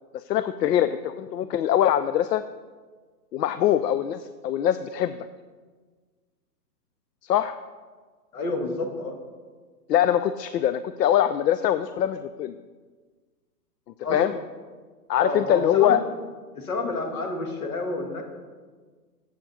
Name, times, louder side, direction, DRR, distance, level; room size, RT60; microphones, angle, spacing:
voice 1, 0.1-2.4 3.3-5.2 7.2-7.6 9.9-12.5 14.1-14.3 15.1-16.0, left 11 dB, 80° left, 12 dB, 0.6 m, -23 dB
voice 2, 8.3-9.2 14.0-14.4 15.2-16.0 16.5-18.2, left 2 dB, 60° left, 4 dB, 1.9 m, -29 dB
7.6 x 6.9 x 5.5 m, 1.4 s
hypercardioid pair, 160°, 48 cm